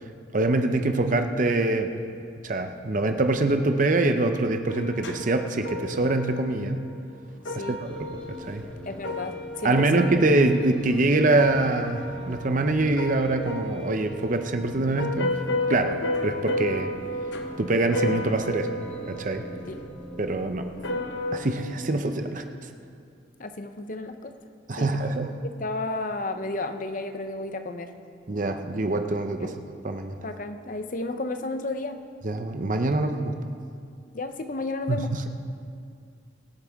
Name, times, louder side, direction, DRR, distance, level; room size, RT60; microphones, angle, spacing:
voice 1, 0.3-1.9 2.4-6.8 7.5-8.6 9.6-15.4 15.7-16.9 17.6-18.8 19.1-19.5 20.2-20.7 21.3-22.4 24.7-25.3 28.3-30.2 32.2-33.4 34.9-35.3, right 2 dB, 45° right, 6 dB, 0.7 m, -24 dB
sound 1, 4.7-7.0 7.3-20.2 20.6-21.4, left 1 dB, 75° left, 1.0 m, -33 dB
voice 2, 7.4-7.8 8.9-10.1 19.7-19.8 23.4-24.3 24.8-24.9 25.4-27.9 29.4-29.5 30.2-32.0 34.1-35.2, left 2 dB, 45° left, 8 dB, 0.8 m, -32 dB
sound 2, 7.8-21.6, equal, 5° left, 1.4 m, -44 dB
23.5 x 8.3 x 3.6 m, 2.4 s
head